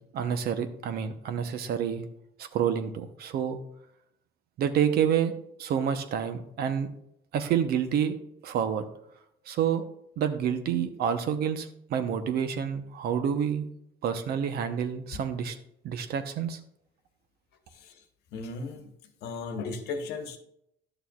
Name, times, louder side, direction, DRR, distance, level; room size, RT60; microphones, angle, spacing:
voice 1, 0.0-2.1 2.4-3.6 4.6-5.3 5.6-6.9 7.3-8.2 8.4-8.8 9.5-9.9 10.2-13.6 14.0-15.6 15.8-16.6, right 8 dB, 70° right, 9 dB, 0.9 m, -28 dB
voice 2, 18.3-18.9 19.2-20.4, left 4 dB, 80° left, 6 dB, 1.2 m, -35 dB
11.0 x 6.8 x 2.4 m, 0.76 s
cardioid pair, 110°, 17 cm